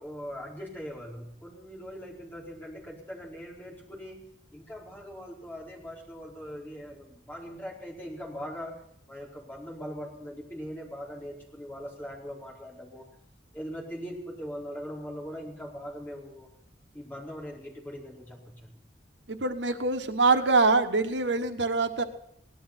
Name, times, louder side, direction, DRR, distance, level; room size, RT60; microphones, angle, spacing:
voice 1, 0.0-4.3 4.5-8.8 9.1-13.1 13.5-16.5 16.9-18.8, equal, 10° left, -3 dB, 4.5 m, -41 dB
voice 2, 19.3-22.0, right 3 dB, 80° right, 7 dB, 1.2 m, -24 dB
18.0 x 12.0 x 5.9 m, 0.71 s
head